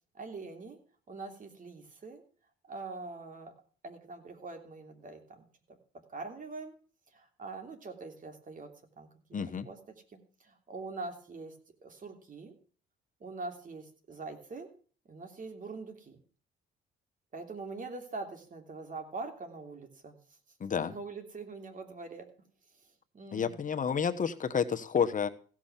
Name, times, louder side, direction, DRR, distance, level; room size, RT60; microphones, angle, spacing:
voice 1, 0.1-0.8 1.1-2.2 2.7-3.5 3.8-5.8 6.1-6.7 7.1-8.7 9.0-9.1 9.6-11.5 11.8-12.5 13.2-14.7 15.1-16.2 17.3-20.2 20.9-22.2 23.1-23.6, right 3 dB, 40° right, 5 dB, 3.1 m, -43 dB
voice 2, 9.3-9.7 20.6-20.9 23.3-25.3, left 7 dB, 40° left, 8 dB, 1.1 m, -30 dB
16.0 x 6.2 x 7.3 m, 0.42 s
cardioid pair, 90°, 20 cm